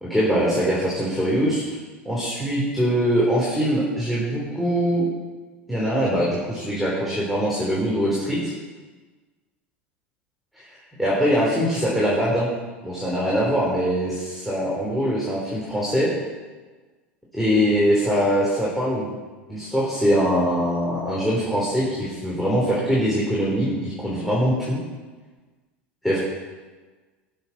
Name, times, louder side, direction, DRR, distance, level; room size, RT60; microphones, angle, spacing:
voice 1, 0.0-1.8 2.1-5.1 5.7-8.5 10.6-10.7 11.0-12.5 12.8-16.1 17.3-19.1 19.5-24.8 26.0-26.2, equal, ahead, -7 dB, 3.5 m, -22 dB
18.0 x 7.2 x 4.2 m, 1.4 s
hypercardioid pair, 90°, 6 cm